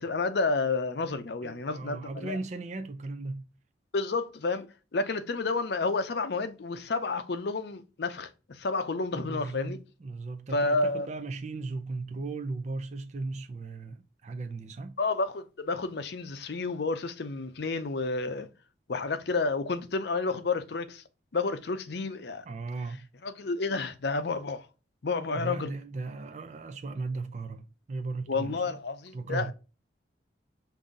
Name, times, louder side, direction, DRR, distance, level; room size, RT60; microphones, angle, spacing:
voice 1, 0.0-2.4 3.9-9.8 10.5-11.1 15.0-18.5 18.9-21.0 21.3-22.5 23.2-24.7 25.0-25.7 28.3-29.5, left 3 dB, 60° left, 0.5 m, -30 dB
voice 2, 1.4-3.5 9.1-15.0 22.5-23.1 25.3-28.7 29.1-29.5, right 3 dB, 40° right, 0.4 m, -37 dB
5.4 x 2.6 x 3.7 m
head